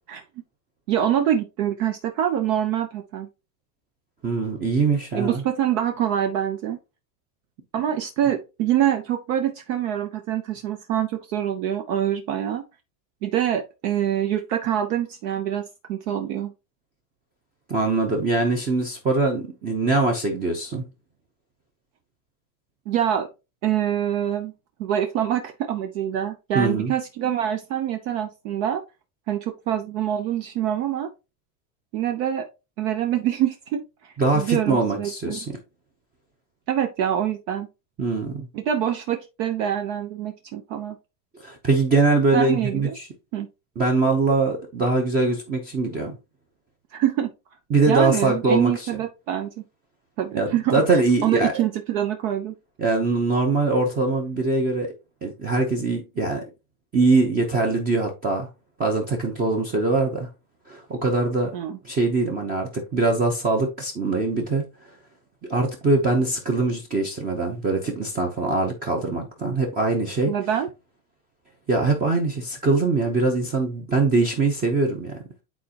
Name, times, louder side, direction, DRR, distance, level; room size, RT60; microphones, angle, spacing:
voice 1, 0.9-3.3 5.1-6.8 7.7-12.6 13.2-15.6 15.9-16.5 22.9-23.3 23.6-24.5 24.8-28.8 29.3-31.1 31.9-32.4 32.8-35.4 36.7-37.7 38.5-41.0 42.3-42.9 43.3-43.5 46.9-47.3 47.9-49.5 50.2-52.5 61.5-61.8 70.3-70.7, right 10 dB, 50° right, 0.9 m, -25 dB
voice 2, 4.2-5.4 17.7-20.9 26.5-26.9 34.2-35.6 38.0-38.5 41.4-43.1 43.8-46.2 47.7-48.9 50.3-51.6 52.8-54.9 55.2-56.4 56.9-58.5 58.8-60.3 60.7-61.5 61.8-64.7 65.5-70.3 71.7-75.2, right 3 dB, 20° right, 0.8 m, -22 dB
9.3 x 4.2 x 2.9 m
supercardioid pair, 170°, 49 cm